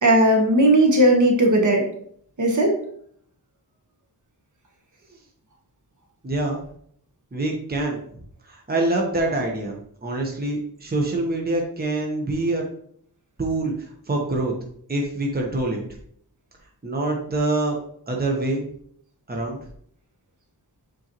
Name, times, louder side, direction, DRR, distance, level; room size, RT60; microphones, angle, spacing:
voice 1, 0.0-1.9 2.4-2.8, right 1 dB, 50° right, 1 dB, 1.3 m, -17 dB
voice 2, 6.2-6.6 7.3-8.0 8.4-12.6 13.4-14.5 14.9-15.8 16.8-17.8 18.1-18.7 19.3-19.6, right 2 dB, 25° right, 0 dB, 1.1 m, -25 dB
7.5 x 4.5 x 3.0 m, 0.65 s
wide cardioid pair, 125°, 38 cm